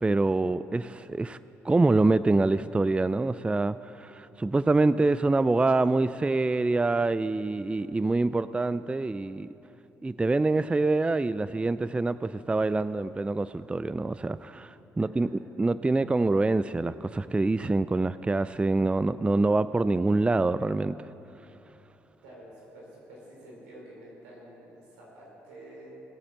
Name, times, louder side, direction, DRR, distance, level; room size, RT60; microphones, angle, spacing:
voice 1, 0.0-1.4 1.6-9.5 10.0-21.0, right 2 dB, 15° right, 15 dB, 0.4 m, -25 dB
voice 2, 22.2-25.9, right 1 dB, 85° right, -4 dB, 4.2 m, -48 dB
17.5 x 8.5 x 7.5 m, 3.0 s
hypercardioid pair, 50°, 7 cm